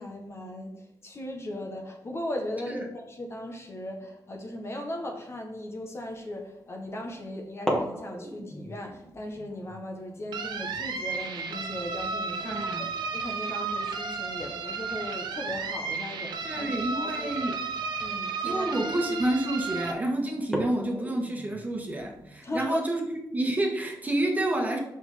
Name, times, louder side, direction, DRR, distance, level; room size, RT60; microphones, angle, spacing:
voice 1, 0.0-17.4 18.0-18.8 22.4-22.8, left 1 dB, 35° left, 2 dB, 1.4 m, -37 dB
sound 1, 6.0-6.3 7.5-13.9 14.2-14.3 14.7-15.0 16.1-16.2 16.9-17.0 17.5-17.6 18.0-18.3 18.9-19.3 19.7-19.8 20.4-22.7, equal, 5° left, 1.6 m, -37 dB
sound 2, 10.3-19.9, right 4 dB, 85° right, 0.9 m, -33 dB
voice 2, 12.4-12.9 16.4-17.6 18.4-24.8, right 1 dB, 20° right, 1 dB, 1.5 m, -29 dB
6.1 x 5.6 x 5.1 m, 0.82 s
cardioid pair, 105°, 7 cm